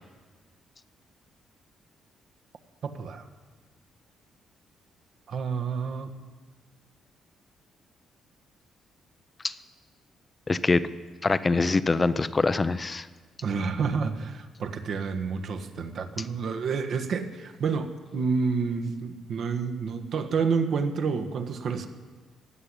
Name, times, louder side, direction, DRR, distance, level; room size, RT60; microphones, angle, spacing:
voice 1, 2.8-3.2 5.3-6.1 13.4-21.9, right 5 dB, 60° right, 6 dB, 1.5 m, -29 dB
voice 2, 10.5-10.8 11.2-13.1, left 3 dB, 25° left, 14 dB, 0.7 m, -24 dB
15.5 x 8.6 x 10.0 m, 1.4 s
cardioid pair, 90°, 0 cm